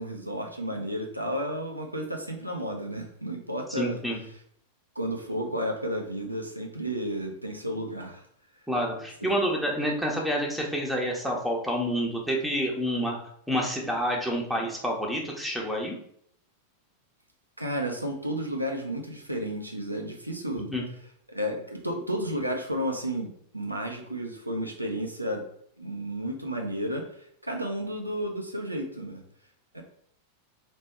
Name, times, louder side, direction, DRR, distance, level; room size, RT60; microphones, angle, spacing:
voice 1, 0.0-4.0 5.0-8.2 17.6-20.7 21.3-25.4 25.8-29.2 29.7-29.8, equal, 85° right, 2 dB, 0.7 m, -32 dB
voice 2, 3.8-4.2 8.7-13.2 13.5-15.9 20.7-20.8, equal, ahead, -2 dB, 1.1 m, -28 dB
3.3 x 3.0 x 4.2 m, 0.67 s
figure-of-eight pair, 90°, 0 cm